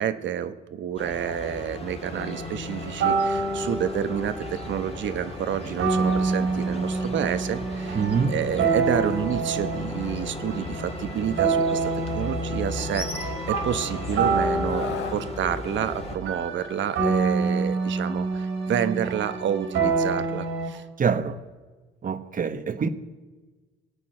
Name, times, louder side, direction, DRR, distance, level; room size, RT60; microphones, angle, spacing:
voice 1, 0.0-20.8, right 9 dB, 70° right, 1.1 m, -29 dB
sound 1, 1.0-16.2, left 2 dB, 30° left, 2.2 m, -36 dB
sound 2, 2.1-20.7, right 4 dB, 85° right, 3.8 m, -28 dB
voice 2, 7.9-8.3 21.0-21.4 22.0-22.9, right 6 dB, 45° right, 1.1 m, -25 dB
Screaming, 14.7-15.2 16.7-16.9, left 8 dB, 70° left, 1.0 m, -35 dB
22.0 x 8.5 x 6.5 m
cardioid pair, 90°, 20 cm